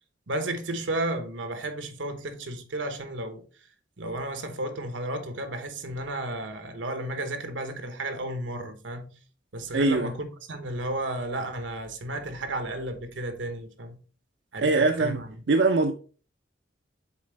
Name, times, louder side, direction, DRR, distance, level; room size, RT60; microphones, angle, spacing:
voice 1, 0.3-3.4 4.0-9.1 9.5-14.0 14.5-15.4, right 1 dB, 90° right, 1.0 m, -33 dB
voice 2, 9.7-10.1 14.6-15.2 15.5-15.9, right 3 dB, 70° right, 0.5 m, -22 dB
7.3 x 4.2 x 3.2 m
head